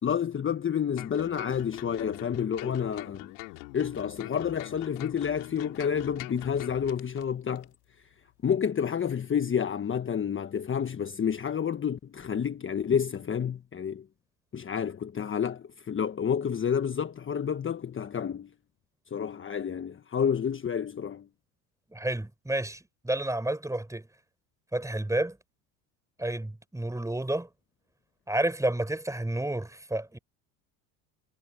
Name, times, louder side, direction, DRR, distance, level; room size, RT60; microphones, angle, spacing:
voice 1, 0.0-3.3 3.7-7.7 8.4-14.0 14.5-18.5 19.1-21.3, left 7 dB, 25° left, 1.3 m, -29 dB
sound 1, 1.0-7.2 7.6-7.7, left 29 dB, 75° left, 3.0 m, -43 dB
voice 2, 21.9-24.1 24.7-25.4 26.2-27.5 28.3-30.2, right 1 dB, 5° right, 4.6 m, -30 dB
hypercardioid pair, 80°, 44 cm